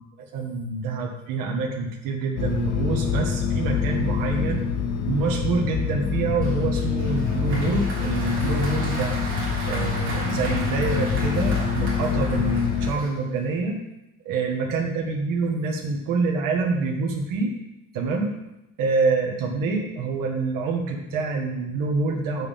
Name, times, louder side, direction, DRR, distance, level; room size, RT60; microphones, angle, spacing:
voice 1, 0.0-4.7 5.1-9.2 9.7-13.8 14.2-17.6 17.9-18.3 18.8-22.5, right 4 dB, 60° right, 1 dB, 2.0 m, -26 dB
sound 1, 2.4-12.9, left 6 dB, 85° left, 1.1 m, -26 dB
Applause, 6.4-13.5, right 1 dB, 35° right, 3.7 m, -36 dB
9.5 x 7.9 x 3.8 m, 0.96 s
cardioid pair, 140°, 36 cm